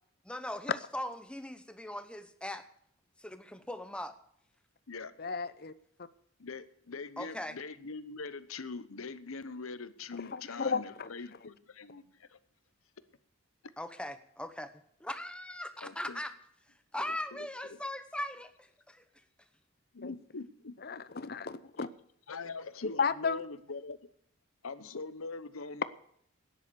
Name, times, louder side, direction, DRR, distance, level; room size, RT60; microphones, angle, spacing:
voice 1, 0.2-2.6 3.2-4.1 7.2-7.6 13.8-14.7 15.0-16.3 16.9-19.0, left 1 dB, 5° left, 0.9 m, -39 dB
voice 2, 5.2-5.7 10.3-11.1 20.0-20.1 20.8-21.9 23.0-23.4, left 5 dB, 45° left, 0.7 m, -33 dB
voice 3, 6.4-12.4 15.8-16.2 17.0-17.5 19.9-21.3 21.8-21.9 22.3-24.0 24.6-25.8, left 4 dB, 85° left, 1.0 m, -43 dB
12.5 x 10.5 x 7.0 m
head